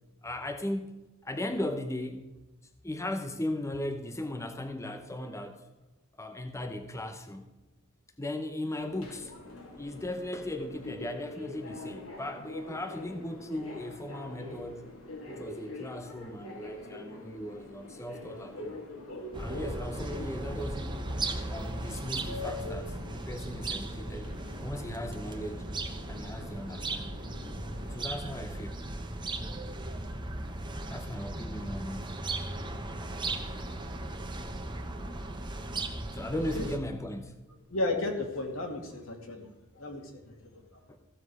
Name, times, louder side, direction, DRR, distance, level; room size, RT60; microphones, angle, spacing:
voice 1, 0.2-2.3 2.8-5.7 6.2-7.5 8.2-9.3 9.8-14.9 15.3-18.8 19.4-24.3 24.6-25.6 26.1-27.2 27.8-28.8 30.9-32.2 33.5-33.9 36.1-37.4 40.9-41.0, left 1 dB, 15° left, 6 dB, 0.8 m, -37 dB
Subway metro underground, 8.7-28.1, left 2 dB, 85° left, 2.9 m, -45 dB
sound 1, 19.3-36.8, right 2 dB, 20° right, 1.1 m, -37 dB
voice 2, 37.7-39.5 39.8-40.8, left 2 dB, 70° left, 2 dB, 2.4 m, -34 dB
15.0 x 7.3 x 4.8 m, 1.1 s
head